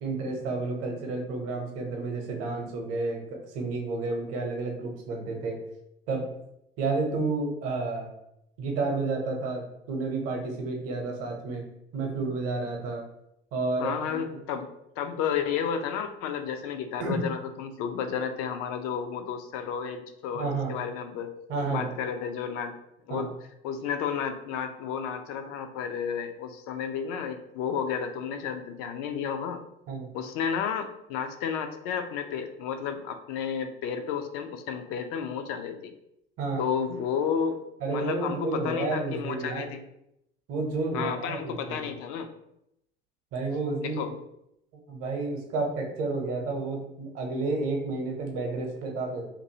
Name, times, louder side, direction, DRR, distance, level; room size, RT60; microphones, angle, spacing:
voice 1, 0.0-3.2 3.5-5.6 6.1-6.3 6.8-8.1 8.6-11.7 11.9-13.1 13.5-14.2 17.0-17.3 20.3-20.8 21.5-21.9 23.1-23.3 29.9-30.1 36.4-36.6 37.8-39.7 40.5-41.9 43.3-44.0 44.7-49.3, right 3 dB, 50° right, 2 dB, 0.8 m, -31 dB
voice 2, 13.8-14.7 15.0-21.3 21.7-22.7 23.1-23.3 23.6-29.6 30.1-35.9 36.6-37.6 37.9-39.8 40.9-42.3 43.8-44.1, left 7 dB, 50° left, 7 dB, 0.4 m, -32 dB
2.6 x 2.6 x 2.7 m, 0.80 s
figure-of-eight pair, 60°, 30 cm